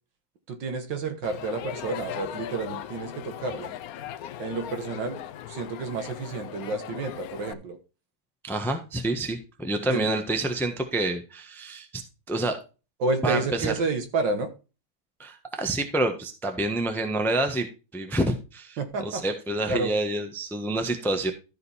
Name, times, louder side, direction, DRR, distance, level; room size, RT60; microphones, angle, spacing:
voice 1, 0.5-3.7 4.4-5.2 5.5-7.8 9.9-10.1 13.0-14.5 18.8-19.2 19.7-19.9, right 3 dB, 65° right, 7 dB, 2.0 m, -30 dB
Crowd, 1.2-7.5, left 11 dB, 80° left, 0.8 m, -38 dB
voice 2, 8.4-12.0 12.3-12.6 13.2-13.7 15.2-17.7 17.9-18.8 19.0-21.3, right 2 dB, ahead, 6 dB, 0.9 m, -28 dB
13.0 x 5.2 x 4.2 m, 0.31 s
omnidirectional pair, 2.2 m